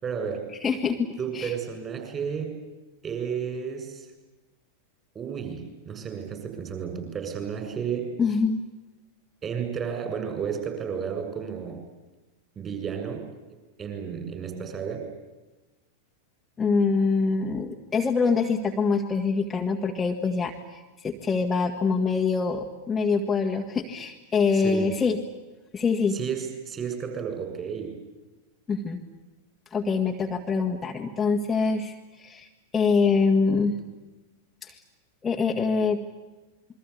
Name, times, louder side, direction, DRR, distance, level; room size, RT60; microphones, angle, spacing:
voice 1, 0.0-0.5 1.2-2.6 3.0-4.1 5.1-8.1 9.4-11.8 12.6-13.3 13.8-15.1 24.5-24.9 26.1-28.0, right 7 dB, 25° right, 6 dB, 7.2 m, -32 dB
voice 2, 0.6-1.5 8.2-8.6 16.6-20.5 21.0-25.2 25.7-26.1 28.7-29.0 29.7-32.5 32.7-33.8 34.6-34.8 35.2-36.0, left 4 dB, 15° left, 2 dB, 1.9 m, -24 dB
28.0 x 23.0 x 8.7 m, 1.1 s
figure-of-eight pair, 90°, 0 cm